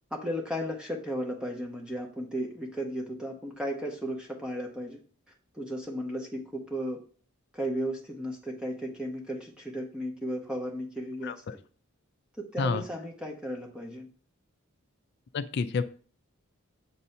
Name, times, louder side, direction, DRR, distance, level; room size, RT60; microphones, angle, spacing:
voice 1, 0.1-5.0 5.5-7.0 7.5-11.4 12.4-14.1, equal, 5° right, 1 dB, 0.7 m, -35 dB
voice 2, 11.2-11.6 12.6-12.8 15.3-15.8, left 5 dB, 50° left, 12 dB, 0.3 m, -29 dB
7.3 x 2.7 x 5.5 m, 0.42 s
head